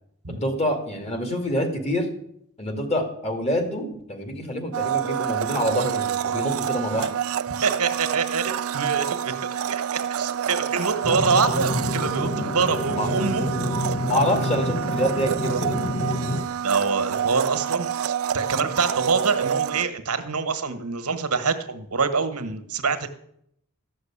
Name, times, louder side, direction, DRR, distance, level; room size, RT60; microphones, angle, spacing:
voice 1, 0.3-2.1 2.6-7.1 13.0-13.1 14.0-15.8, equal, 30° left, 6 dB, 2.3 m, -26 dB
Domestic sounds home sounds, 4.7-19.8, right 9 dB, 65° right, 0.4 m, -28 dB
voice 2, 7.6-13.5 16.6-23.1, right 5 dB, 90° right, 10 dB, 1.4 m, -25 dB
sound 1, 11.0-16.4, left 1 dB, 45° left, 1.1 m, -28 dB
13.5 x 6.4 x 8.8 m, 0.72 s
head